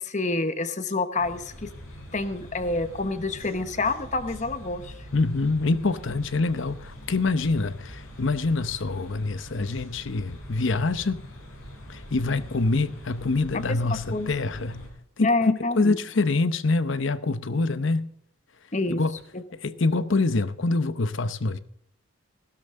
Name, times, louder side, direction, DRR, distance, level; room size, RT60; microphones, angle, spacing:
voice 1, 0.0-1.7 2.1-4.9 13.7-13.8 14.1-14.3 15.2-16.0 18.7-19.0 19.3-19.4, left 3 dB, 35° left, 1.0 m, -27 dB
sound 1, 1.2-14.9, equal, 90° left, 6.6 m, -43 dB
voice 2, 5.1-11.2 11.9-14.8 15.2-15.3 15.8-18.1 18.9-19.2 19.6-21.6, left 3 dB, 65° left, 0.8 m, -25 dB
16.0 x 12.5 x 3.7 m
head